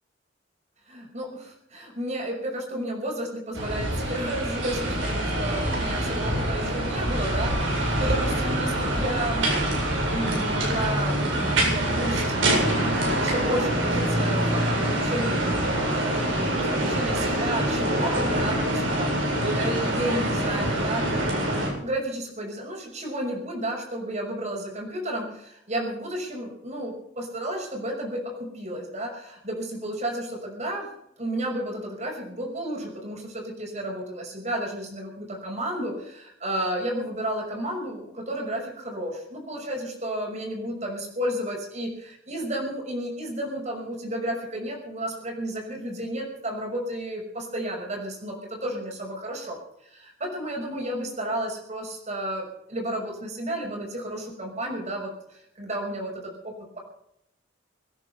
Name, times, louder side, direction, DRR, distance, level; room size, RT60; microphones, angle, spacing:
voice 1, 0.9-9.5 10.1-11.2 11.6-30.9 31.2-56.8, right 1 dB, 35° right, 1 dB, 6.1 m, -32 dB
sound 1, 3.5-21.7, right 1 dB, 90° right, 7.9 m, -25 dB
25.0 x 10.0 x 5.6 m, 0.76 s
head